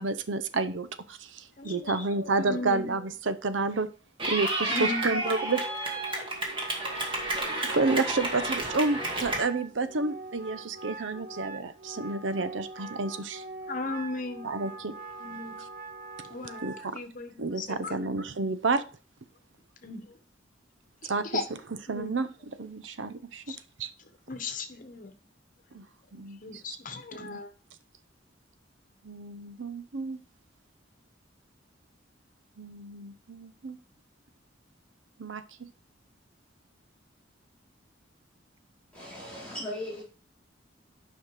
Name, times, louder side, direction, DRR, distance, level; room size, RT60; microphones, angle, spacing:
voice 1, 0.0-3.9 4.3-5.7 7.6-13.4 14.4-14.9 15.6-15.7 16.3-16.4 16.6-17.0 17.4-18.8 21.1-21.4 21.9-23.9 25.7-25.8 26.1-26.6 27.1-27.4 29.0-30.2 32.6-33.8 35.2-35.7, right 3 dB, 80° right, 0.7 m, -30 dB
voice 2, 1.6-2.9 4.7-5.1 13.7-14.5 15.2-15.6 16.3-16.7 16.9-18.2 19.8-20.1 21.0-21.5 21.9-22.1 23.5-23.6 24.3-25.2 26.4-27.5, left 3 dB, 45° left, 1.2 m, -36 dB
Clapping / Cheering, 4.2-9.4, right 1 dB, 30° right, 2.0 m, -31 dB
Wind instrument woodwind instrument, 5.2-16.9, right 3 dB, 50° right, 0.9 m, -43 dB
voice 3, 38.9-40.0, left 1 dB, 5° left, 4.6 m, -37 dB
9.1 x 5.6 x 4.8 m
head